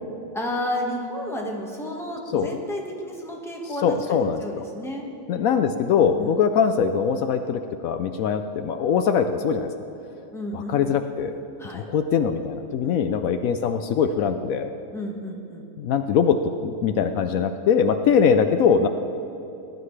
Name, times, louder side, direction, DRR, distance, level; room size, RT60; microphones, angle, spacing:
voice 1, 0.3-5.1 6.2-6.3 10.3-11.0 11.6-11.9 12.8-13.0 14.9-15.6, left 1 dB, ahead, -1 dB, 1.4 m, -32 dB
voice 2, 3.7-4.6 5.3-9.7 10.5-11.3 11.7-14.7 15.8-18.9, left 7 dB, 75° left, 8 dB, 1.0 m, -22 dB
20.0 x 11.5 x 3.3 m, 2.9 s
omnidirectional pair, 1.5 m